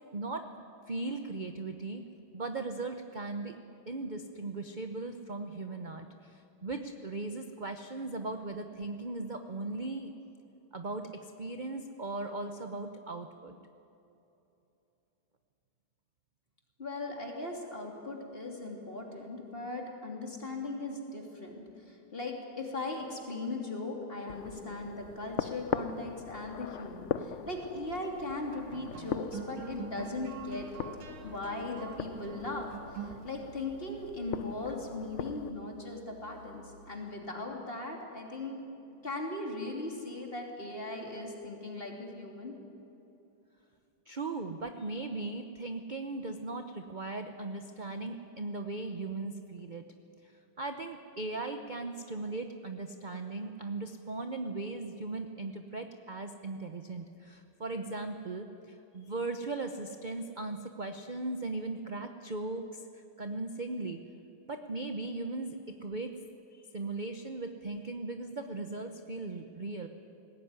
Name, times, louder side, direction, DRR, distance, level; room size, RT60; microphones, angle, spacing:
voice 1, 0.1-0.5 0.9-2.0 2.3-3.6 3.9-10.1 10.7-11.1 11.4-13.5 44.1-49.8 50.2-50.3 50.6-64.0 64.5-66.1 66.5-69.9, right 3 dB, 45° right, 6 dB, 0.6 m, -38 dB
voice 2, 16.8-30.7 31.2-38.6 39.0-42.5, left 2 dB, 25° left, 1 dB, 3.0 m, -39 dB
sound 1, 24.3-35.5, left 8 dB, 90° left, 0.6 m, -41 dB
sound 2, 27.7-37.3, right 6 dB, 90° right, 2.2 m, -47 dB
20.0 x 17.0 x 9.6 m, 2.9 s
omnidirectional pair, 2.2 m